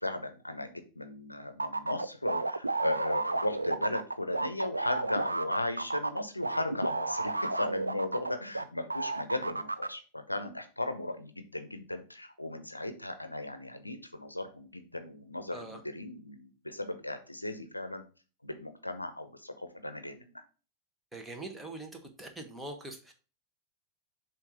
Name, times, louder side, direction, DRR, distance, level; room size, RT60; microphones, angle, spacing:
voice 1, 0.0-18.0 18.4-20.4, left 1 dB, 85° left, 8 dB, 0.7 m, -36 dB
sound 1, 1.6-8.6 8.9-9.9, right 3 dB, 80° right, 0.4 m, -32 dB
voice 2, 21.1-21.9 22.2-23.1, right 2 dB, 10° right, 4 dB, 1.2 m, -42 dB
7.2 x 2.7 x 5.1 m, 0.35 s
figure-of-eight pair, 90°, 0 cm